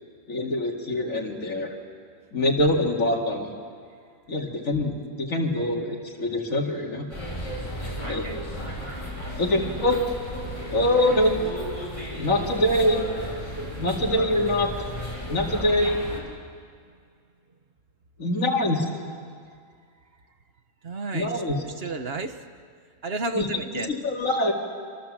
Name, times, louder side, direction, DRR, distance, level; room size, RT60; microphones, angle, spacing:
voice 1, 0.3-1.8 2.3-3.5 4.3-7.1 8.0-8.2 9.4-10.0 10.7-11.3 12.2-13.0 13.8-14.7 15.3-16.0 18.2-18.9 21.1-21.6 23.4-24.5, left 1 dB, 80° left, -1 dB, 2.7 m, -24 dB
sound 1, 7.1-16.2, equal, 25° left, 4.7 m, -34 dB
voice 2, 8.0-8.4 13.5-13.8 20.8-21.3 21.6-22.4 23.0-23.9, right 3 dB, 50° right, 8 dB, 1.3 m, -32 dB
26.5 x 23.5 x 7.5 m, 2.1 s
omnidirectional pair, 1.4 m